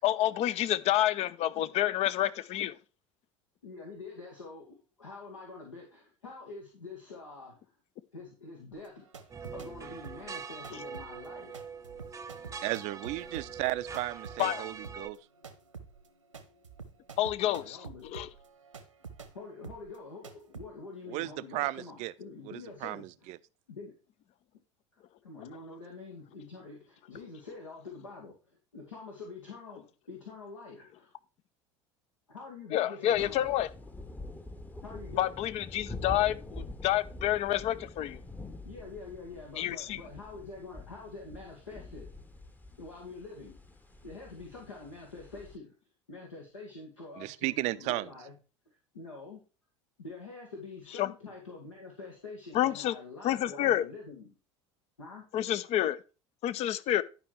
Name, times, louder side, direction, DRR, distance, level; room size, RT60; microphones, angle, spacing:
voice 1, 0.0-2.8 14.4-14.6 17.2-17.8 18.1-18.3 32.7-33.7 35.2-38.2 39.6-40.0 51.0-51.1 52.5-52.9 53.2-53.9 55.3-56.0 56.4-57.0, left 13 dB, 40° left, 0.6 m, -28 dB
voice 2, 3.6-7.7 8.1-9.1 9.5-11.7 17.5-18.1 19.3-23.3 23.7-23.9 24.9-31.1 32.3-33.6 34.8-35.3 38.6-42.1 42.8-43.5 44.0-45.7 46.1-48.4 48.9-49.4 50.0-54.3 55.0-55.3, left 3 dB, 80° left, 2.1 m, -46 dB
sound 1, 8.7-9.7 10.0-19.4 19.6-20.0 20.2-20.7, right 5 dB, 80° right, 1.1 m, -48 dB
sound 2, 9.3-15.1, right 5 dB, 20° right, 0.8 m, -43 dB
voice 3, 12.6-15.2 21.1-22.1 22.5-23.4 47.2-48.1, right 18 dB, 45° right, 0.5 m, -34 dB
sound 3, 33.1-45.6, left 2 dB, 10° left, 1.0 m, -46 dB
11.0 x 5.2 x 4.6 m
figure-of-eight pair, 70°, 16 cm